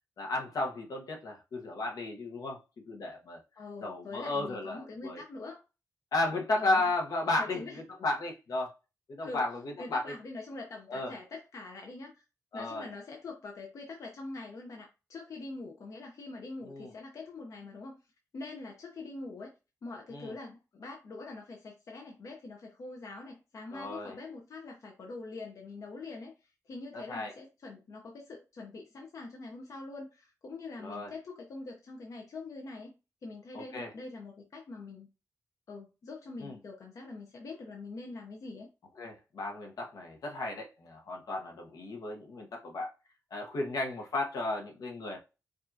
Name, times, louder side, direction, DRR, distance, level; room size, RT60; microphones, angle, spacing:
voice 1, 0.2-2.6 2.9-3.4 3.8-5.2 6.1-8.7 9.1-10.1 10.9-11.1 12.5-12.9 16.6-16.9 20.1-20.3 23.7-24.2 26.9-27.3 30.8-31.1 33.5-33.9 36.4-36.6 39.0-42.9 43.3-45.2, left 2 dB, 75° left, 1.1 m, -34 dB
voice 2, 3.6-5.6 6.6-6.8 7.4-7.8 9.2-9.4 9.8-12.2 12.5-18.0 18.3-19.5 19.8-26.3 26.7-32.9 33.2-35.1 35.7-38.7, left 3 dB, 60° left, 0.8 m, -44 dB
5.2 x 2.5 x 2.7 m
wide cardioid pair, 125°, 6 cm